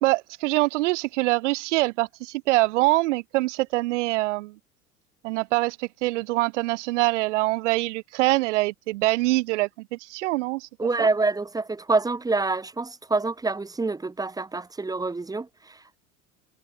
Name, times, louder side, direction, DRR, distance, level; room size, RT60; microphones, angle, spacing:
voice 1, 0.0-4.6 5.2-11.1, right 20 dB, 55° right, 1.0 m, -24 dB
voice 2, 10.8-16.0, right 3 dB, 10° right, 1.1 m, -26 dB
figure-of-eight pair, 75°, 42 cm